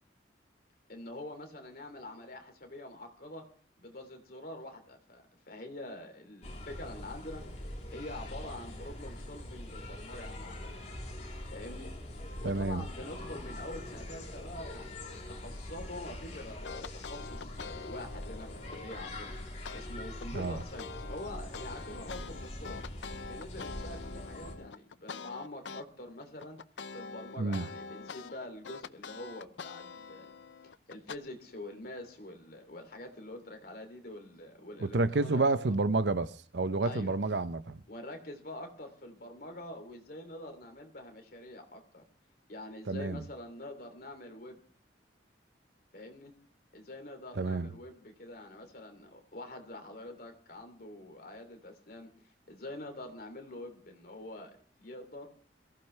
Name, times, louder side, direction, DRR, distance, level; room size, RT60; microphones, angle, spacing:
voice 1, 0.9-3.4 3.8-7.4 7.9-10.9 11.4-11.9 12.4-22.8 23.3-26.6 26.9-30.3 30.6-35.7 36.8-37.1 37.9-42.0 42.5-44.6 45.9-46.3 46.7-55.3, left 1 dB, 55° left, 3.0 m, -45 dB
sound 1, 6.4-24.5, left 1 dB, 40° left, 3.4 m, -43 dB
voice 2, 12.4-12.8 20.3-20.6 27.4-27.6 34.8-37.8 42.9-43.2 47.4-47.7, right 3 dB, 75° right, 0.7 m, -29 dB
sound 2, 13.0-18.3, equal, 5° left, 3.4 m, -59 dB
sound 3, 16.6-19.0 19.6-19.8 20.2-25.8 26.2-31.2, left 5 dB, 90° left, 0.6 m, -45 dB
22.5 x 15.0 x 3.3 m
head